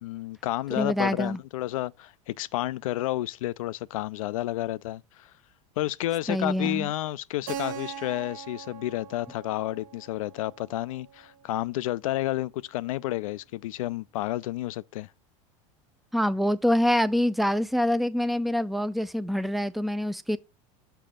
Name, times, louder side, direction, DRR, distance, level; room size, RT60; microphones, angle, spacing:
voice 1, 0.0-5.3 5.8-15.1, left 15 dB, 85° left, 0.4 m, -31 dB
voice 2, 0.7-1.4 6.3-6.9 16.1-20.4, equal, ahead, 0.4 m, -25 dB
Keyboard (musical), 7.5-12.0, right 8 dB, 50° right, 0.8 m, -41 dB
6.8 x 5.1 x 3.7 m
supercardioid pair, 115°, 17 cm